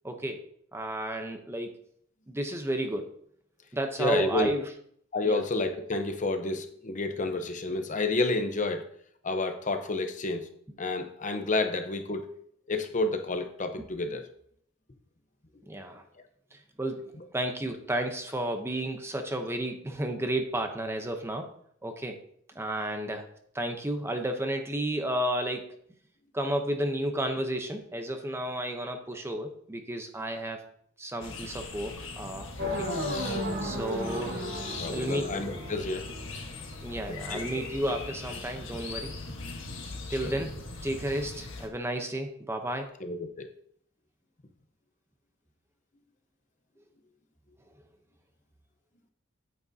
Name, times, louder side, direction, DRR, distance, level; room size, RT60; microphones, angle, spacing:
voice 1, 0.0-0.4 0.7-1.7 2.3-3.1 3.7-4.7 5.2-5.4 15.7-16.0 16.5-21.5 21.8-22.2 22.5-23.3 23.5-25.7 26.3-30.6 31.0-32.9 33.6-34.5 34.9-35.2 36.8-39.4 40.1-42.9, right 1 dB, 10° right, 5 dB, 0.7 m, -32 dB
voice 2, 4.0-4.5 5.1-8.8 9.2-10.5 10.8-12.2 12.7-14.3 34.8-36.1 37.1-37.6 40.1-40.3 43.0-43.5, left 2 dB, 35° left, 7 dB, 0.8 m, -30 dB
sound 1, 31.2-41.7, left 3 dB, 65° left, 1.4 m, -40 dB
sound 2, 32.6-36.6, equal, 50° right, 1.3 m, -34 dB
9.0 x 8.7 x 2.7 m, 0.66 s
head